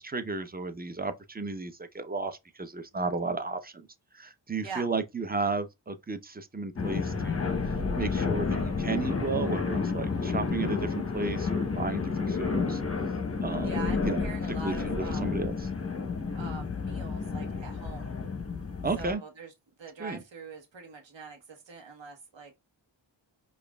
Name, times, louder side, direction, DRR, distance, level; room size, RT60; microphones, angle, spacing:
voice 1, 0.0-3.9 4.1-7.5 8.0-12.8 13.4-13.7 14.0-14.2 14.5-15.5 18.8-19.2 20.0-20.2, right 3 dB, 20° right, 0.7 m, -33 dB
sound 1, 6.8-19.1, left 4 dB, 30° left, 0.9 m, -30 dB
voice 2, 13.6-15.2 16.3-18.2 19.0-19.5 19.8-22.5, right 4 dB, 65° right, 1.1 m, -43 dB
4.9 x 2.5 x 2.3 m
cardioid pair, 50°, 47 cm